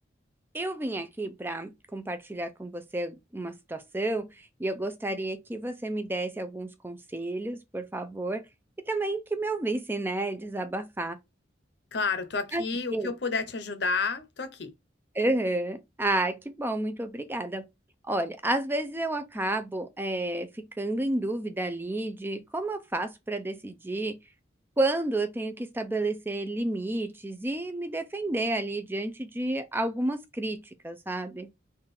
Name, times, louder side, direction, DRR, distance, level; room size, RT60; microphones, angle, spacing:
voice 1, 0.5-8.4 8.9-11.2 12.5-12.6 12.9-13.1 15.1-17.7 18.1-24.2 24.8-31.5, right 2 dB, 10° right, 0.4 m, -31 dB
voice 2, 11.9-14.7, left 4 dB, 65° left, 0.7 m, -30 dB
3.7 x 2.4 x 4.2 m
head